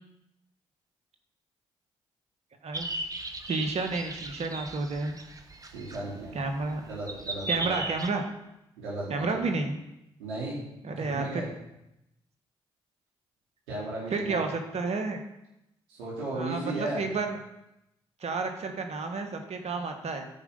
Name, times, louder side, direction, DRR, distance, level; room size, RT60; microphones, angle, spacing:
sound 1, 2.7-8.1, right 2 dB, 30° right, 1.2 m, -37 dB
voice 1, 3.5-5.2 6.3-6.8 7.5-8.2 9.1-9.8 10.8-11.4 14.1-15.2 16.3-17.4 18.2-20.3, right 3 dB, 55° right, 5 dB, 1.4 m, -31 dB
voice 2, 5.6-6.4 6.8-7.8 8.8-9.4 10.2-11.5 13.7-14.4 15.9-17.1, right 2 dB, 85° right, -6 dB, 4.2 m, -35 dB
13.0 x 4.9 x 5.5 m, 0.87 s
hypercardioid pair, 40°, 13 cm